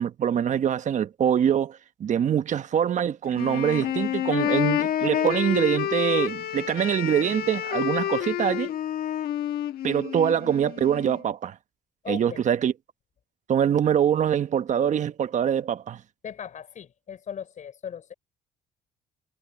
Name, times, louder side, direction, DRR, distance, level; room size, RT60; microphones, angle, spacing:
voice 1, 0.0-8.7 9.8-11.5 12.1-12.7 13.5-16.0, right 9 dB, 45° right, 1.1 m, -24 dB
Wind instrument woodwind instrument, 3.3-11.2, left 11 dB, 65° left, 1.5 m, -29 dB
voice 2, 12.0-12.4 16.2-18.1, left 8 dB, 45° left, 4.5 m, -38 dB
cardioid pair, 110°, 17 cm